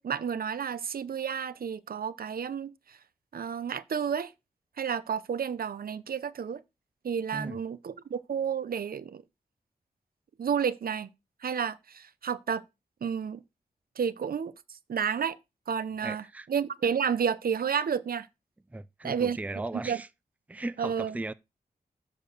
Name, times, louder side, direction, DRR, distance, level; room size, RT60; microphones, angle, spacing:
voice 1, 0.0-3.0 3.3-4.3 4.8-6.6 7.0-9.2 10.4-11.1 11.4-12.6 13.0-13.4 14.0-15.4 15.7-16.2 16.5-18.3 19.0-19.4 19.7-20.0 20.8-21.2, right 7 dB, 75° right, 0.7 m, -31 dB
voice 2, 16.0-16.5 18.7-20.1 20.5-21.3, right 2 dB, 10° right, 0.4 m, -37 dB
10.5 x 4.4 x 6.8 m
wide cardioid pair, 85°, 16 cm